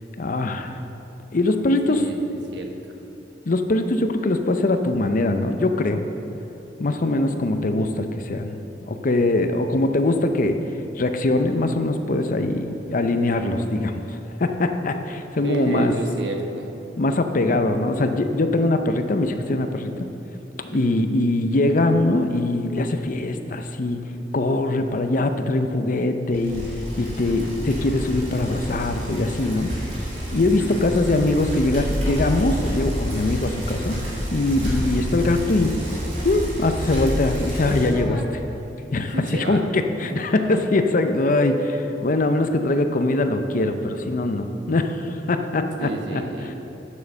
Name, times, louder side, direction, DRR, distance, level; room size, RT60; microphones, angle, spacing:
voice 1, 0.2-0.8 1.3-2.0 3.5-6.0 6.8-8.5 8.9-10.6 11.0-15.9 17.0-19.9 20.6-24.0 24.3-26.6 27.0-29.7 30.3-34.0 34.3-35.8 36.2-38.2 38.9-46.2, left 2 dB, 50° left, 7 dB, 0.6 m, -22 dB
voice 2, 1.9-2.2 2.5-2.7 15.4-16.7 20.7-21.0 30.6-30.9 39.1-39.6 40.0-40.1 45.8-46.5, right 2 dB, 75° right, 3 dB, 1.1 m, -30 dB
Bicycle, 26.3-38.0, equal, 40° right, 2.5 m, -29 dB
sound 1, 37.4-38.3 40.4-42.1, left 2 dB, ahead, 1.2 m, -35 dB
9.6 x 6.4 x 6.5 m, 3.0 s
head